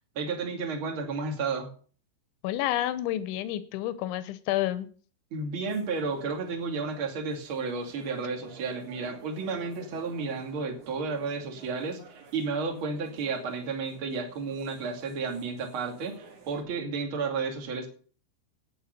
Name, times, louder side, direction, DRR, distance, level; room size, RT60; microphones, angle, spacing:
voice 1, 0.1-1.7 5.3-17.9, right 4 dB, 35° right, 2 dB, 2.3 m, -32 dB
voice 2, 2.4-4.9, left 14 dB, 75° left, 14 dB, 3.0 m, -29 dB
sound 1, 5.6-16.6, right 5 dB, 70° right, 1.6 m, -51 dB
11.0 x 9.6 x 6.7 m, 0.42 s
omnidirectional pair, 5.9 m